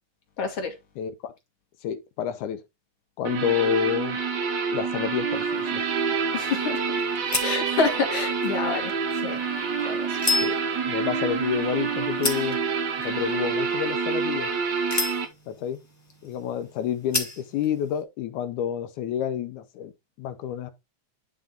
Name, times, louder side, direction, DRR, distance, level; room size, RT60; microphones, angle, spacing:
voice 1, 0.4-0.8 6.3-6.8 7.3-9.4 9.8-10.2, left 4 dB, 50° left, 2.1 m, -28 dB
voice 2, 1.0-1.3 1.8-2.6 3.2-4.2 4.7-5.8 10.4-10.6 10.8-12.6 13.0-14.5 15.5-15.8 16.2-19.9 20.2-20.7, left 9 dB, 85° left, 2.2 m, -29 dB
sound 1, 3.2-15.2, right 5 dB, 60° right, 1.1 m, -27 dB
sound 2, 5.3-18.0, left 2 dB, 10° left, 1.2 m, -35 dB
10.0 x 3.6 x 3.7 m
omnidirectional pair, 3.4 m